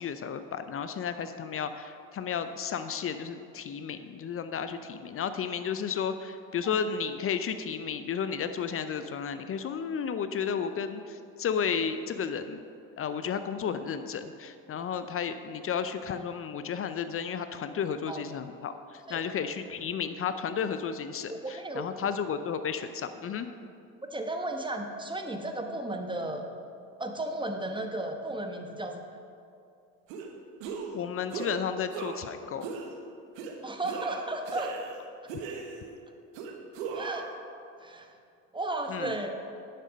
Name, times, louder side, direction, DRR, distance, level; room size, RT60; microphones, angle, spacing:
voice 1, 0.0-12.6 13.0-23.5 30.9-32.7 38.9-39.1, left 7 dB, 35° left, 10 dB, 0.6 m, -33 dB
voice 2, 21.4-21.9 24.1-26.5 27.0-29.0 33.6-34.7 36.9-37.3 37.8-38.1 38.5-39.3, right 2 dB, 10° right, 4 dB, 1.1 m, -34 dB
sound 1, 30.1-30.3 30.6-31.0 31.3-31.6 31.9-32.3 32.6-32.9 33.4-33.5 33.8-35.0 35.3-35.9 36.3-37.3, right 5 dB, 75° right, 1.3 m, -38 dB
9.7 x 6.7 x 5.1 m, 2.5 s
hypercardioid pair, 75°, 40 cm